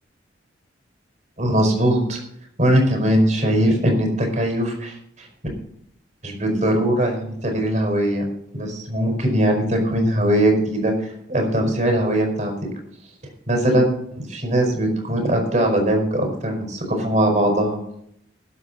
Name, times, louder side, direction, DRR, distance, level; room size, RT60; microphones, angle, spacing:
voice 1, 1.4-2.2 2.6-4.9 6.2-8.2 8.5-10.9 11.3-12.5 13.5-17.8, right 1 dB, 40° right, 2 dB, 5.0 m, -20 dB
20.5 x 8.1 x 4.3 m, 0.71 s
head